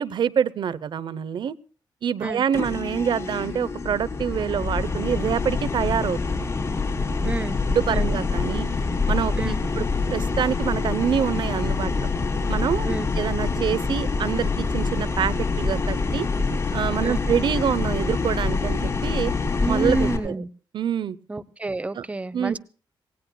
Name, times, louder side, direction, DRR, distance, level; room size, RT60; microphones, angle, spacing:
voice 1, 0.0-1.6 2.0-6.3 7.2-7.3 7.7-8.7 9.1-12.1 12.5-16.3 16.7-19.3 19.7-20.3 20.7-21.2 22.0-22.1 22.3-22.6, right 8 dB, 65° right, 18 dB, 0.7 m, -26 dB
sound 1, 2.5-20.2, left 4 dB, 35° left, 4.3 m, -26 dB
voice 2, 7.2-7.6 7.9-8.1 9.4-9.6 12.8-13.1 17.0-17.2 19.6-20.5 21.3-22.6, right 2 dB, 15° right, 15 dB, 0.7 m, -29 dB
27.0 x 18.0 x 2.2 m, 0.39 s
cardioid pair, 120°, 9 cm